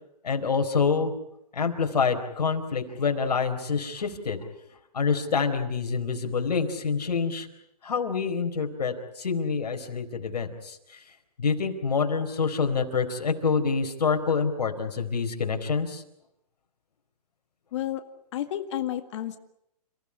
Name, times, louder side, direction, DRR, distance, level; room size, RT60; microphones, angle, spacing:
voice 1, 0.2-1.1 1.5-4.4 4.9-7.5 7.8-11.0 11.4-16.0, left 5 dB, 75° left, 5 dB, 4.3 m, -27 dB
voice 2, 18.3-19.4, left 12 dB, 45° left, 8 dB, 1.9 m, -31 dB
30.0 x 15.5 x 9.9 m, 0.80 s
hypercardioid pair, 145°, 21 cm